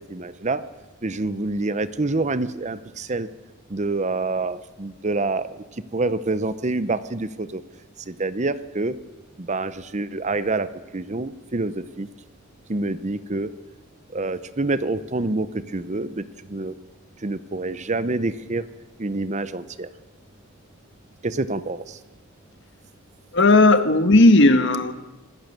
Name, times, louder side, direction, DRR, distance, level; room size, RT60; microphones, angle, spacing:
voice 1, 0.1-0.6 1.0-3.3 3.7-5.5 5.9-7.6 8.1-8.9 9.4-12.1 12.7-13.5 14.1-16.2 16.5-16.7 17.2-18.6 19.0-19.9 21.2-22.0, right 2 dB, 35° right, 14 dB, 0.8 m, -27 dB
voice 2, 23.3-24.9, left 2 dB, 60° left, 9 dB, 1.5 m, -15 dB
26.0 x 15.5 x 6.7 m, 1.2 s
head